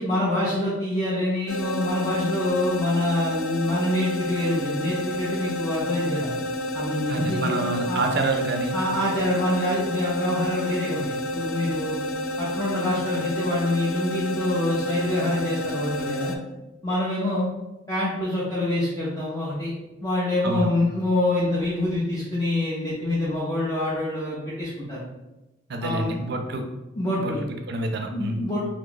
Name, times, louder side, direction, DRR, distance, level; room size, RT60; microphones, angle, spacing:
voice 1, 0.0-6.3 6.7-8.0 8.7-12.0 12.4-16.3 16.8-17.5 17.9-19.7 20.0-25.0 25.8-26.2 26.9-27.4 28.1-28.6, left 1 dB, 20° left, -8 dB, 0.6 m, -26 dB
sound 1, 1.5-16.4, left 1 dB, 80° left, 0.4 m, -30 dB
voice 2, 7.1-8.8 20.4-20.7 25.7-26.6 27.2-28.5, right 2 dB, 55° right, 4 dB, 0.4 m, -27 dB
2.9 x 2.3 x 3.8 m, 1.0 s
head